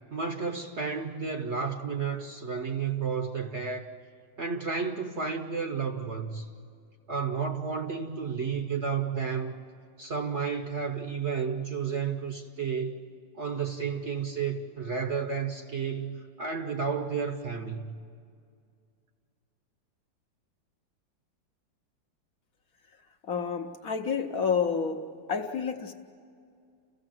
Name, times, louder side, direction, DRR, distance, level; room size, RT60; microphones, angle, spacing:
voice 1, 0.1-3.9 4.4-6.5 7.1-9.6 10.0-13.0 13.3-17.9, right 6 dB, 45° right, 5 dB, 1.0 m, -32 dB
voice 2, 23.2-25.0 25.3-25.9, left 6 dB, 55° left, 4 dB, 1.2 m, -29 dB
30.0 x 15.5 x 7.7 m, 2.3 s
omnidirectional pair, 2.0 m